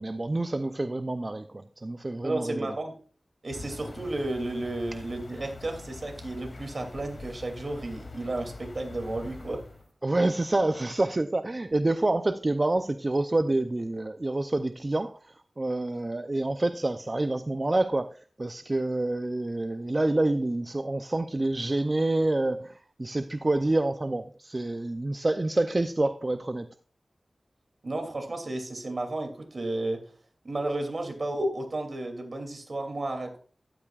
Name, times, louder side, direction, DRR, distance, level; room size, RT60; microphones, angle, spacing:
voice 1, 0.0-2.7 10.0-26.7, right 2 dB, 35° right, 9 dB, 0.5 m, -27 dB
voice 2, 2.2-2.9 3.4-9.6 27.8-30.0 30.4-33.4, right 2 dB, 55° right, 4 dB, 2.7 m, -32 dB
sound 1, 3.5-9.9, left 3 dB, 65° left, 2.5 m, -44 dB
13.0 x 12.0 x 2.4 m, 0.41 s
wide cardioid pair, 70°, 0 cm